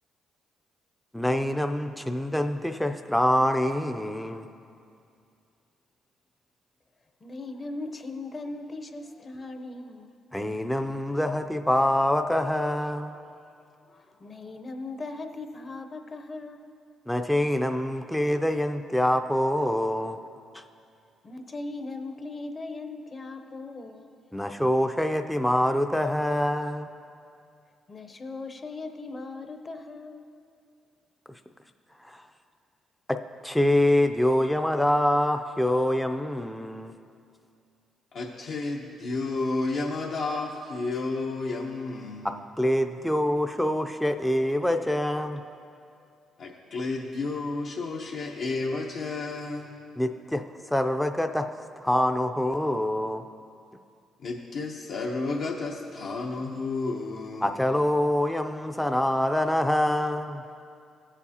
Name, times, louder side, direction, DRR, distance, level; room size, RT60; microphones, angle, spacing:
voice 1, 1.1-4.5 10.3-13.1 17.1-20.2 20.5-20.6 24.3-26.9 32.0-32.2 33.4-36.9 42.6-45.4 50.0-50.4 50.7-51.5 51.8-53.2 57.4-60.4, left 1 dB, 5° left, 5 dB, 0.4 m, -25 dB
voice 2, 7.2-10.1 13.1-13.2 13.7-16.6 21.2-24.2 27.9-30.3, left 2 dB, 35° left, 7 dB, 0.7 m, -39 dB
voice 3, 38.1-42.4 46.4-49.7 54.2-57.6, left 3 dB, 70° left, -2 dB, 0.7 m, -31 dB
16.0 x 7.2 x 2.8 m, 2.4 s
cardioid pair, 90°, 0 cm